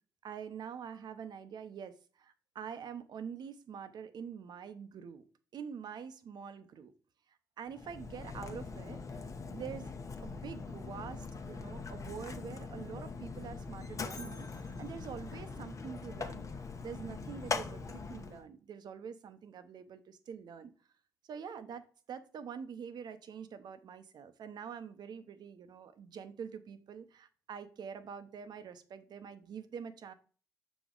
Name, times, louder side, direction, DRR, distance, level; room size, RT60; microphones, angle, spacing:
voice 1, 0.2-5.2 5.5-6.9 7.6-14.5 14.8-16.4 16.8-20.7 21.2-30.1, right 7 dB, 65° right, 11 dB, 0.8 m, -45 dB
Mechanisms, 7.7-18.4, left 4 dB, 45° left, 1.0 m, -42 dB
6.9 x 5.1 x 3.9 m, 0.40 s
supercardioid pair, 55°, 8 cm